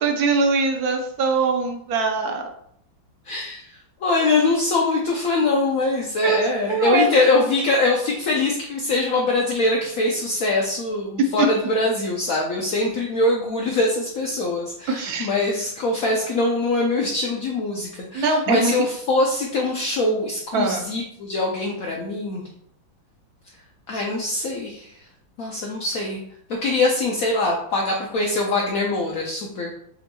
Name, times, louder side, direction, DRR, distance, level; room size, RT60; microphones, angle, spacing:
voice 1, 0.0-2.4 6.2-6.4 6.7-7.1 14.9-15.3 18.1-18.7 20.5-20.8, right 4 dB, 80° right, 3 dB, 0.8 m, -22 dB
voice 2, 3.3-3.7 4.0-22.4 23.9-24.9 25.4-26.2 26.6-29.7, left 2 dB, 80° left, -1 dB, 0.7 m, -23 dB
6.2 x 2.9 x 2.2 m, 0.70 s
omnidirectional pair, 2.2 m